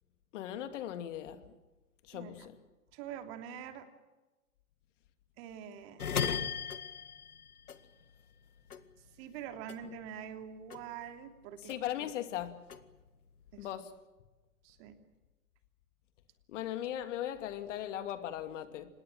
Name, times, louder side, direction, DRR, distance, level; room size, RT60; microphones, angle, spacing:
voice 1, 0.3-1.4 2.1-2.6 11.6-12.6 13.6-13.9 16.5-18.9, left 11 dB, 55° left, 9 dB, 2.6 m, -38 dB
voice 2, 2.1-2.5 2.9-3.9 5.4-6.0 9.2-11.7 13.5-13.7 14.6-15.0, right 8 dB, 45° right, 7 dB, 3.0 m, -45 dB
sound 1, 6.0-8.4 8.7-10.4 10.7-12.1 12.5-13.6, left 7 dB, 85° left, 1.9 m, -38 dB
26.0 x 20.5 x 7.7 m, 1.1 s
hypercardioid pair, 120°, 44 cm